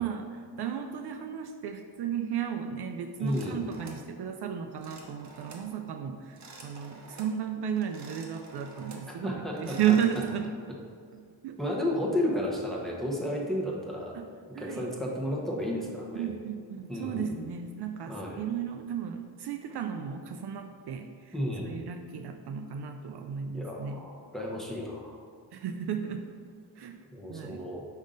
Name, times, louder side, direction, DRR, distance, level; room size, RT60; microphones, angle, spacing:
voice 1, 0.0-10.5 11.4-11.6 14.1-14.2 14.5-14.9 16.1-21.3 21.6-24.0 25.5-26.3 26.8-27.0 27.3-27.6, right 8 dB, 65° right, 5 dB, 0.5 m, -33 dB
voice 2, 3.2-3.8 9.2-10.0 11.6-14.2 14.6-16.3 16.9-17.5 18.1-18.4 21.3-21.8 23.5-25.2 27.1-27.9, left 1 dB, ahead, -3 dB, 0.9 m, -32 dB
sound 1, 3.3-4.1 4.8-5.7 6.2-7.4 7.8-9.1 9.5-10.4, right 3 dB, 40° right, 0.8 m, -49 dB
5.4 x 5.3 x 3.8 m, 2.2 s
wide cardioid pair, 155°, 44 cm